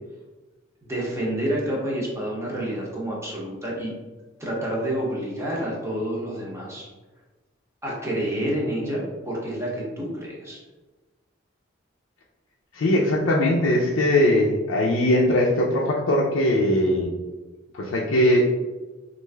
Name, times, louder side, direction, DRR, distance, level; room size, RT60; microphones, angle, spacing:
voice 1, 0.9-3.9 4.4-6.9 7.8-10.6, right 1 dB, 15° right, -4 dB, 0.8 m, -28 dB
voice 2, 12.7-17.1 17.7-18.5, left 1 dB, 70° left, -3 dB, 0.4 m, -20 dB
3.2 x 2.5 x 3.3 m, 1.2 s
head